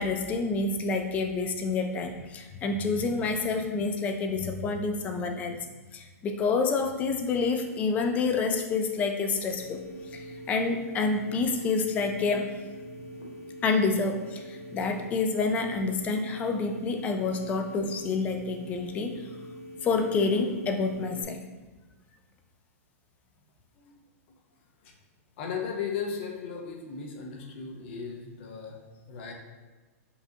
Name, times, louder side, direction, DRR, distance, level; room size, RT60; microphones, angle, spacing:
voice 1, 0.0-5.6 5.9-9.8 10.1-12.5 13.6-19.2 19.8-21.4, left 4 dB, 15° left, 5 dB, 0.3 m, -28 dB
sound 1, 9.5-21.2, equal, 85° left, 1.1 m, -43 dB
voice 2, 25.4-28.8 29.1-29.3, left 6 dB, 45° left, 2 dB, 0.7 m, -36 dB
5.4 x 2.5 x 2.7 m, 1.3 s
hypercardioid pair, 145°, 8 cm